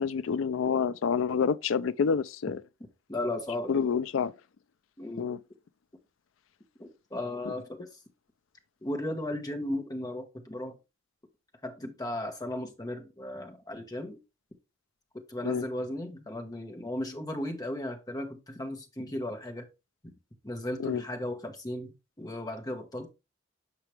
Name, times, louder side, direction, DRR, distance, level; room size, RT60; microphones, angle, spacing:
voice 1, 0.0-2.6 3.7-4.3 5.2-5.4 15.4-15.6 20.8-21.0, left 6 dB, 85° left, 0.4 m, -28 dB
voice 2, 3.1-3.9 5.0-5.3 6.8-7.9 8.8-10.8 11.6-14.2 15.1-19.7 20.4-23.1, left 1 dB, 20° left, 1.2 m, -36 dB
6.0 x 5.6 x 3.2 m
head